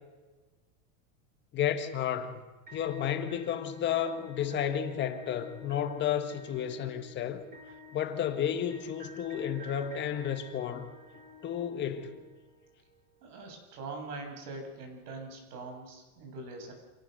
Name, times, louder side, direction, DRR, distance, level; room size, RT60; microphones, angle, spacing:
voice 1, 1.5-2.4 2.7-7.5 7.9-10.9 11.4-12.2, left 9 dB, 25° left, 1.5 m, -32 dB
sound 1, 2.7-12.7, equal, 20° right, 7.0 m, -50 dB
voice 2, 13.2-16.7, right 3 dB, 90° right, 7.5 m, -42 dB
27.5 x 18.0 x 6.7 m
supercardioid pair, 160°, 44 cm